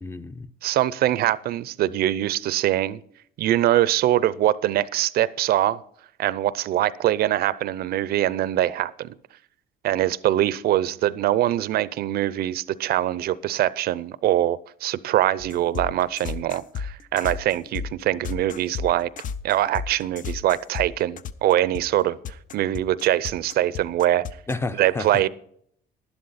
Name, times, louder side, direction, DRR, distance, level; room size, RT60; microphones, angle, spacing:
voice 1, 0.0-0.5 24.5-25.3, left 2 dB, 15° left, 0.6 m, -31 dB
voice 2, 0.6-3.0 3.4-5.8 6.2-9.1 9.8-19.1 19.4-22.2 22.5-24.2 24.8-25.3, right 13 dB, 65° right, 0.5 m, -23 dB
sound 1, 15.4-24.5, left 6 dB, 50° left, 0.7 m, -33 dB
11.5 x 11.5 x 4.1 m
cardioid pair, 110°, 17 cm